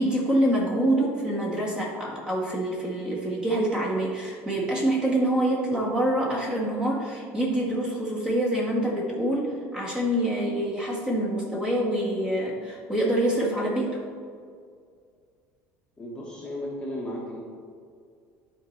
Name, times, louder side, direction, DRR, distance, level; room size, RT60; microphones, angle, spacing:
voice 1, 0.0-14.0, right 1 dB, 15° right, -4 dB, 1.7 m, -26 dB
voice 2, 16.0-17.4, left 1 dB, 15° left, -5 dB, 1.3 m, -34 dB
11.5 x 4.5 x 3.2 m, 2.2 s
cardioid pair, 140°, 6 cm